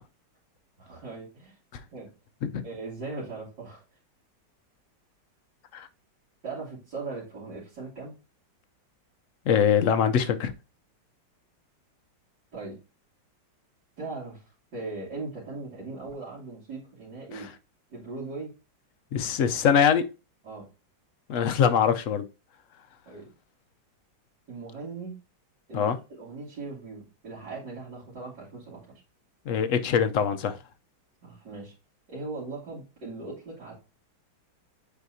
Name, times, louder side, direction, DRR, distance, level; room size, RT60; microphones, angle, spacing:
voice 1, 0.8-1.6 1.9-2.1 2.6-3.8 6.4-8.1 12.5-12.8 14.0-14.4 14.7-17.5 17.9-18.5 20.4-20.7 23.1-23.3 24.5-25.2 25.7-28.9 31.2-31.7 32.1-33.7, right 3 dB, 65° right, 3.2 m, -39 dB
voice 2, 9.5-10.5 17.3-17.5 19.1-20.0 21.3-22.2 25.7-26.0 29.5-30.6, left 7 dB, 60° left, 0.8 m, -23 dB
8.3 x 4.6 x 2.7 m
omnidirectional pair, 2.0 m